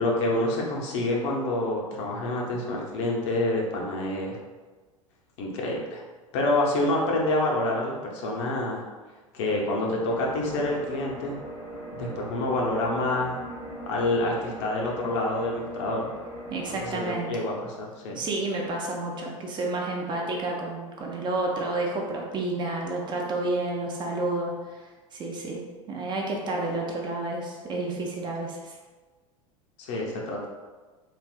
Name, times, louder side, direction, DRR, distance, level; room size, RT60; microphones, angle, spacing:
voice 1, 0.0-4.4 5.4-6.0 6.3-8.8 9.3-11.4 11.9-13.4 13.9-16.1 16.7-18.2 29.8-30.5, left 2 dB, 55° left, -2 dB, 0.7 m, -27 dB
sound 1, 10.0-17.0, right 1 dB, 80° left, 1.4 m, -41 dB
voice 2, 16.5-17.3 18.1-25.6 25.9-28.8, right 2 dB, 25° right, -1 dB, 0.5 m, -30 dB
3.3 x 2.5 x 2.3 m, 1.3 s
figure-of-eight pair, 80°, 18 cm